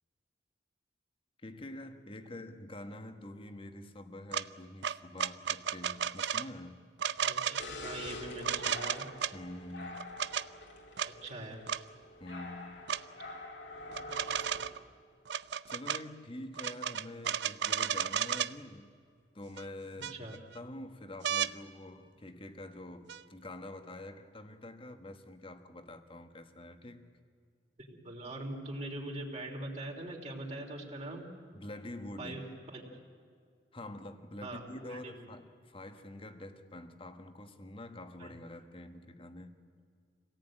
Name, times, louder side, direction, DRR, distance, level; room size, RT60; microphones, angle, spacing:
voice 1, 1.4-6.8 9.3-10.1 12.2-12.8 15.7-18.9 19.3-20.3 20.5-27.1 31.5-32.4 33.7-39.6, left 1 dB, 30° left, 8 dB, 1.5 m, -46 dB
sound 1, 4.3-4.5 4.8-6.5 7.0-7.7 8.4-9.3 10.0-10.5 11.0-11.1 11.7-11.8 12.9-13.0 13.9-14.8 15.3-16.0 16.5-18.5 19.6-19.7 20.0-20.6 21.2-21.5 23.1-23.2, right 9 dB, 70° right, 0.5 m, -33 dB
voice 2, 7.2-9.0 11.0-11.6 20.1-20.4 27.8-31.3 32.2-32.8 34.4-35.3 38.2-38.3, right 1 dB, 40° right, 0 dB, 3.3 m, -42 dB
sound 2, 7.6-14.7, left 1 dB, 85° left, 3.1 m, -46 dB
26.5 x 18.0 x 9.0 m, 2.2 s
head